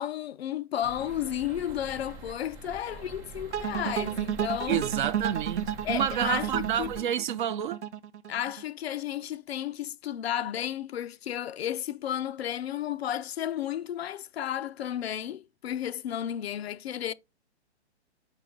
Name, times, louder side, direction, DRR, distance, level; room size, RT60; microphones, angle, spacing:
voice 1, 0.0-4.8 5.8-6.9 8.3-17.1, left 11 dB, 65° left, 0.6 m, -33 dB
sound 1, 0.8-7.0, right 3 dB, 10° right, 0.4 m, -45 dB
sound 2, 3.5-8.6, right 9 dB, 85° right, 0.7 m, -32 dB
voice 2, 4.7-7.8, right 10 dB, 45° right, 0.8 m, -29 dB
5.5 x 5.2 x 3.8 m
hypercardioid pair, 135°, 34 cm